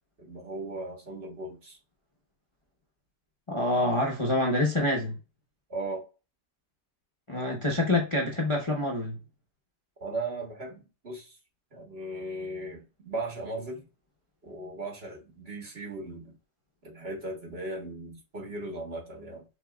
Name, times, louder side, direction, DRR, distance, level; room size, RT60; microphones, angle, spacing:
voice 1, 0.2-1.8 5.7-6.1 10.0-11.4 11.7-13.9 14.4-16.4 16.8-19.4, right 2 dB, 35° right, 1.6 m, -37 dB
voice 2, 3.5-5.1 7.3-9.2, left 1 dB, 30° left, 0.6 m, -26 dB
6.0 x 2.9 x 2.3 m
omnidirectional pair, 1.9 m